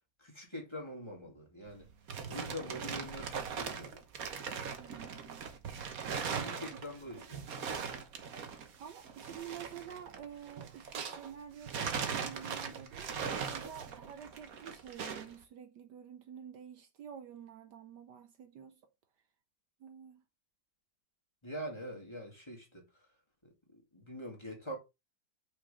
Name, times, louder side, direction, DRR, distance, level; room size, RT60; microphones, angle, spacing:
voice 1, 0.2-1.9 2.3-4.0 6.4-7.6 21.4-23.1 23.4-24.8, equal, 15° left, 2.2 m, -44 dB
sound 1, 1.7-11.3 11.6-15.3, right 6 dB, 55° right, 1.4 m, -40 dB
voice 2, 4.8-5.5 6.3-6.6 8.8-13.1 13.5-18.8 19.8-20.2, right 8 dB, 70° right, 1.2 m, -49 dB
5.5 x 5.0 x 5.0 m
omnidirectional pair, 2.1 m